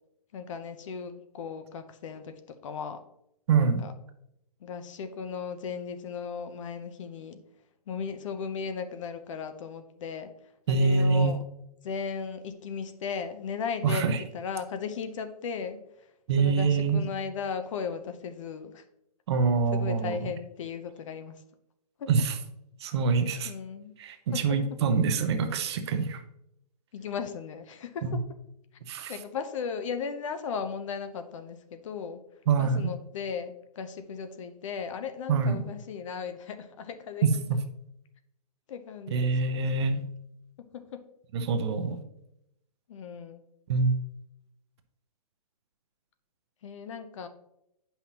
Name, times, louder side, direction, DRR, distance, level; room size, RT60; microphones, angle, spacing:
voice 1, 0.3-3.0 3.6-3.9 4.6-7.4 7.9-11.4 11.8-16.1 16.4-18.8 19.7-21.4 22.0-22.1 23.4-24.0 24.3-24.4 26.9-28.2 29.1-32.2 32.6-37.4 38.7-39.4 40.6-41.0 41.5-41.7 42.9-43.4 46.6-47.3, left 6 dB, 50° left, 9 dB, 0.7 m, -36 dB
voice 2, 3.5-3.8 10.7-11.4 13.8-14.2 16.3-17.0 19.3-20.2 22.1-22.3 22.8-23.5 24.0-26.2 28.0-28.2 28.9-29.1 32.5-32.9 35.3-35.7 37.2-37.6 39.1-40.0 41.3-42.0 43.7-44.0, right 4 dB, 40° right, 8 dB, 0.7 m, -25 dB
8.4 x 5.7 x 2.9 m, 0.82 s
hypercardioid pair, 150°, 21 cm